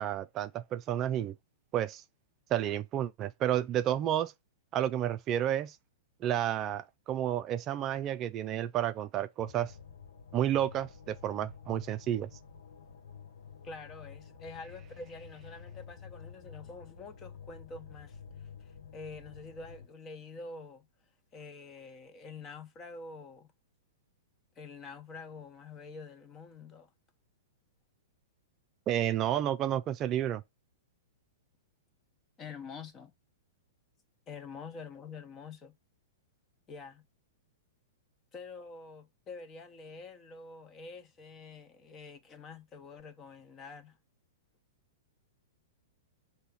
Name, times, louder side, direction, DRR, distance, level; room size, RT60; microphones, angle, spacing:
voice 1, 0.0-1.3 1.7-2.0 2.5-4.3 4.7-5.8 6.2-9.7 10.3-12.3 28.9-30.4, right 11 dB, 30° right, 0.4 m, -31 dB
sound 1, 9.4-19.9, left 6 dB, 70° left, 1.0 m, -50 dB
voice 2, 13.6-20.9 21.3-23.5 24.6-26.9 32.4-33.1 34.3-35.7 36.7-37.0 38.3-44.0, left 4 dB, 25° left, 1.1 m, -47 dB
6.7 x 2.9 x 5.8 m
hypercardioid pair, 115°, 0 cm